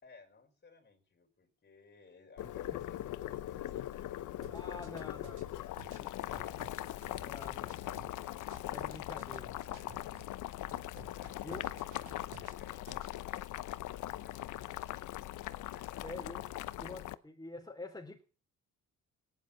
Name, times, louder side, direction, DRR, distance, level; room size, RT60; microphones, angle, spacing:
voice 1, 0.0-5.0 5.5-7.8 9.6-10.0 10.6-12.0 12.3-13.2 14.1-15.4 15.7-16.1, left 4 dB, 35° left, 4.6 m, -60 dB
Boiling, 2.4-17.1, left 14 dB, 80° left, 0.9 m, -41 dB
sound 1, 4.4-10.3 10.7-13.1, right 9 dB, 80° right, 2.3 m, -56 dB
voice 2, 4.5-5.5 6.0-6.5 7.2-7.7 8.7-9.6 11.4-11.6 16.0-16.4 16.8-18.2, left 2 dB, 15° left, 3.8 m, -47 dB
18.0 x 10.5 x 7.2 m
cardioid pair, 90°, 30 cm